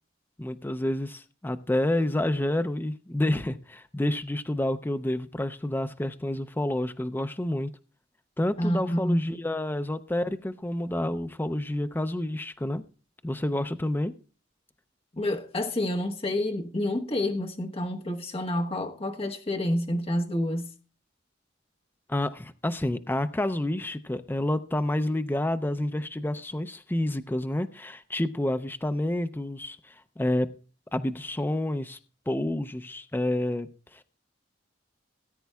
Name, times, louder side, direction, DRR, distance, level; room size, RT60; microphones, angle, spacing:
voice 1, 0.4-7.7 8.4-12.8 13.2-14.1 22.1-30.5 30.9-32.0 32.3-34.0, left 1 dB, 10° left, 0.4 m, -29 dB
voice 2, 8.6-9.4 15.2-20.7, left 1 dB, 30° left, 1.1 m, -28 dB
18.0 x 9.4 x 2.3 m
head